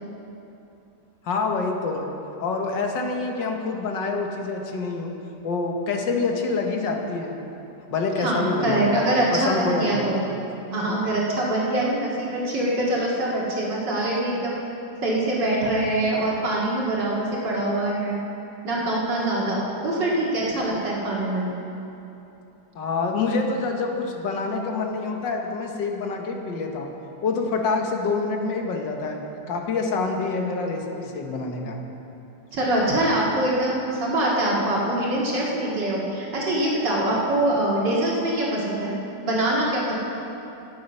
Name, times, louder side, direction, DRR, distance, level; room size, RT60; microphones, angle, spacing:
voice 1, 1.2-2.0 2.4-5.1 5.4-7.4 7.9-9.0 9.3-10.1 22.8-26.9 27.2-29.2 29.5-31.8, left 4 dB, 75° left, 3 dB, 1.8 m, -26 dB
voice 2, 8.2-10.2 10.7-14.6 15.0-18.2 18.6-21.5 32.5-38.9 39.2-39.9, right 1 dB, 70° right, -5 dB, 2.8 m, -24 dB
18.0 x 7.5 x 5.5 m, 3.0 s
omnidirectional pair, 2.0 m